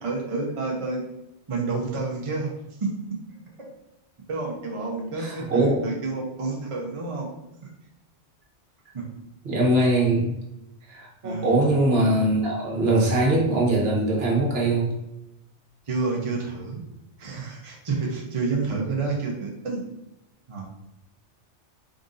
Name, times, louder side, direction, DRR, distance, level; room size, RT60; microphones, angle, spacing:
voice 1, 0.0-1.0 1.5-2.5 2.8-2.9 3.6-3.7 4.3-7.3 7.6-7.7 8.9-9.1 11.2-11.6 15.9-16.8 17.2-19.8 20.5-20.6, right 3 dB, 35° right, -1 dB, 0.6 m, -29 dB
voice 2, 5.2-5.8 9.4-10.3 10.9-14.9, right 2 dB, 60° right, -3 dB, 1.2 m, -22 dB
3.8 x 2.6 x 3.8 m, 0.90 s
omnidirectional pair, 1.2 m